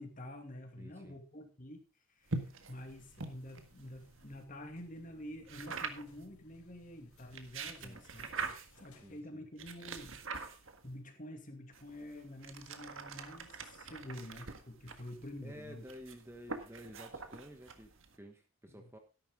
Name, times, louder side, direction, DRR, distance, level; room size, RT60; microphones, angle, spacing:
voice 1, 0.0-1.8 2.1-8.3 8.7-10.5 10.8-15.8 18.7-18.8, left 1 dB, 35° left, 5 dB, 2.4 m, -48 dB
voice 2, 0.8-1.2 7.8-8.0 9.0-9.4 15.4-19.0, equal, 10° right, 5 dB, 1.2 m, -52 dB
sound 1, 2.3-4.4 5.5-6.2 7.2-8.9 9.6-10.9 11.7-18.2, right 4 dB, 65° right, 1.6 m, -44 dB
sound 2, 2.8-9.2, equal, 85° left, 3.5 m, -64 dB
13.5 x 11.0 x 3.7 m, 0.31 s
head